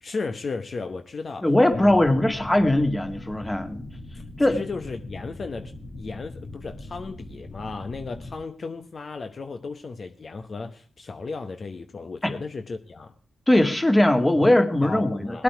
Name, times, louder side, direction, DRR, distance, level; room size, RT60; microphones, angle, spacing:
voice 1, 0.0-2.0 2.6-2.7 4.5-13.1 14.4-14.5 14.8-15.4, left 4 dB, 55° left, 7 dB, 1.0 m, -35 dB
voice 2, 1.4-3.9 4.4-4.6 12.2-12.3 13.5-15.4, left 1 dB, 15° left, 7 dB, 2.0 m, -20 dB
sound 1, 1.7-8.3, left 2 dB, 70° left, 3.7 m, -41 dB
19.0 x 8.5 x 4.7 m, 0.43 s
cardioid pair, 60°, 0 cm